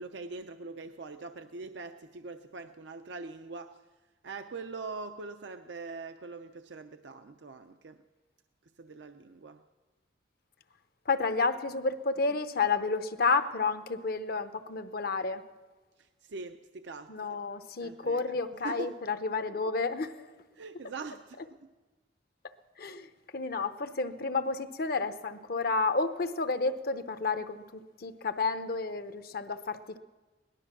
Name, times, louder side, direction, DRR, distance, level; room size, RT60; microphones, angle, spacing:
voice 1, 0.0-3.8 4.2-8.0 8.8-9.6 16.2-17.1 17.8-18.2 18.6-18.9 20.6-21.7, right 3 dB, 75° right, 8 dB, 0.6 m, -42 dB
voice 2, 11.1-15.4 17.1-20.3 22.8-23.1 23.3-27.6 28.0-30.0, left 4 dB, 55° left, 10 dB, 0.8 m, -31 dB
18.5 x 12.5 x 6.0 m, 1.2 s
head